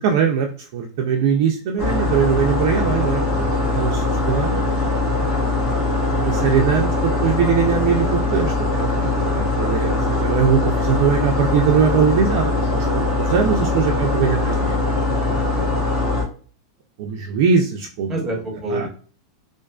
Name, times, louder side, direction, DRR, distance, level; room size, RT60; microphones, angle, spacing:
voice 1, 0.0-3.5 3.7-4.6 6.1-14.8 17.0-18.2 18.7-18.9, right 7 dB, 45° right, 2 dB, 0.3 m, -21 dB
sound 1, 1.8-16.2, left 2 dB, 25° left, 0.7 m, -21 dB
voice 2, 6.1-6.6 13.5-13.7 15.2-15.7 18.1-18.9, right 1 dB, 10° right, 0 dB, 0.8 m, -30 dB
2.4 x 2.3 x 2.3 m, 0.40 s
supercardioid pair, 175°, 3 cm